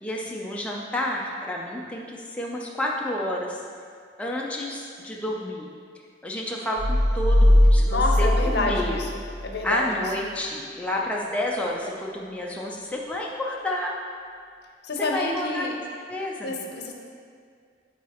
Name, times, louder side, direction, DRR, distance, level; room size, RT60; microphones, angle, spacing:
voice 1, 0.0-3.6 4.2-5.7 6.2-9.0 9.6-14.0 15.0-15.7 16.1-16.6, left 1 dB, 5° left, -3 dB, 0.4 m, -30 dB
sound 1, 6.8-9.6, left 1 dB, 75° right, 0.6 m, -20 dB
voice 2, 7.9-10.1 14.8-15.8 16.4-16.9, left 2 dB, 60° left, 1 dB, 0.7 m, -28 dB
9.3 x 4.1 x 3.0 m, 2.2 s
head